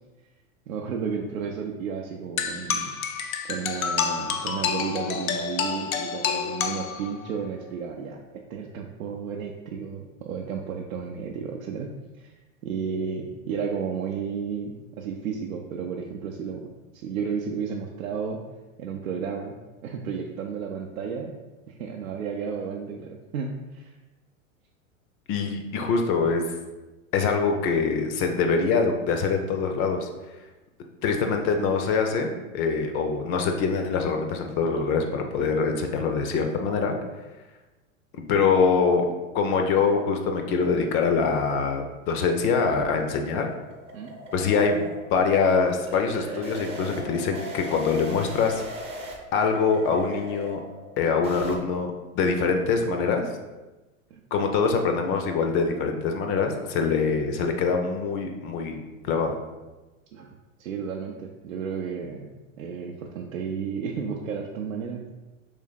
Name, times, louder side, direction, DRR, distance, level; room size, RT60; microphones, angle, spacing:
voice 1, 0.7-2.9 3.5-11.9 12.2-12.3 12.6-18.4 18.8-19.6 19.8-21.3 21.7-23.9 43.9-44.2 54.1-54.2 60.1-60.3 60.6-62.3 62.6-65.1, right 6 dB, 85° right, 1 dB, 0.6 m, -33 dB
sound 1, 2.4-7.4, left 7 dB, 90° left, 0.5 m, -29 dB
voice 2, 25.3-26.4 27.1-30.1 31.0-36.9 38.3-39.1 39.3-43.5 44.3-48.6 49.3-50.6 51.0-53.2 54.3-59.3, left 5 dB, 35° left, 4 dB, 0.5 m, -24 dB
sound 2, 42.6-51.6, right 1 dB, 15° right, 0.6 m, -39 dB
3.3 x 3.1 x 4.0 m, 1.1 s
hypercardioid pair, 110°, 40 cm